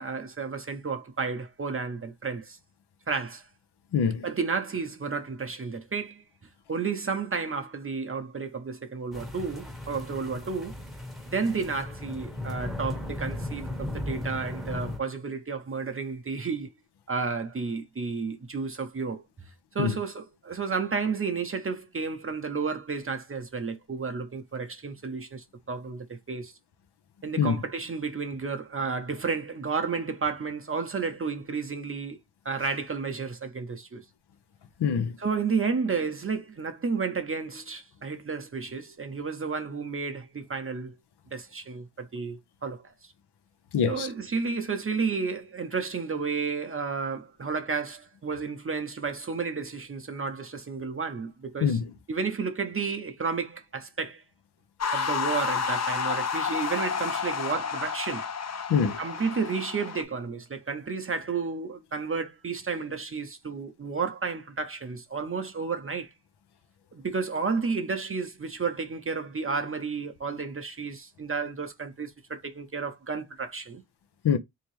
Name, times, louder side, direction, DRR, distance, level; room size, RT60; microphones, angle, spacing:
voice 1, 0.0-2.6 3.1-3.5 4.2-6.2 6.7-10.7 11.3-16.7 17.1-26.5 27.2-32.2 32.4-34.0 35.2-41.0 41.3-43.1 43.9-51.8 52.1-54.2 54.9-58.3 59.0-66.1 66.9-73.8, right 5 dB, 35° right, 0.6 m, -32 dB
voice 2, 3.9-4.2 19.8-20.0 27.4-27.5 34.8-35.2 43.7-44.1 51.6-51.8 58.7-59.0 74.2-74.4, left 7 dB, 85° left, 0.7 m, -24 dB
sound 1, 9.1-15.0, left 1 dB, ahead, 0.8 m, -36 dB
sound 2, 54.8-60.0, left 6 dB, 40° left, 0.6 m, -30 dB
3.5 x 2.8 x 3.0 m
wide cardioid pair, 105°, 39 cm